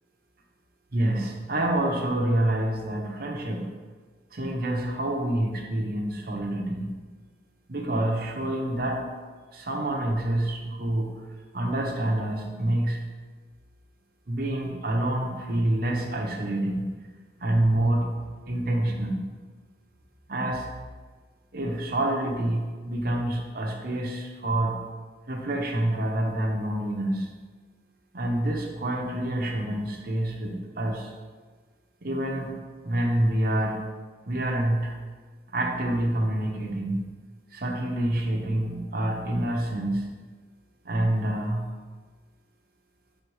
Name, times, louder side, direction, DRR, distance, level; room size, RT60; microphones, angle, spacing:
voice 1, 0.9-3.7 4.3-6.9 7.7-9.0 9.5-11.1 11.5-13.0 14.3-16.9 17.4-18.1 18.5-19.2 20.3-20.7 21.5-24.8 25.3-27.3 28.1-31.1 32.0-32.6 32.8-33.8 34.3-35.0 35.5-37.0 37.5-40.1 40.8-41.7, right 1 dB, 55° right, 1 dB, 0.9 m, -27 dB
4.7 x 3.7 x 5.4 m, 1.4 s
head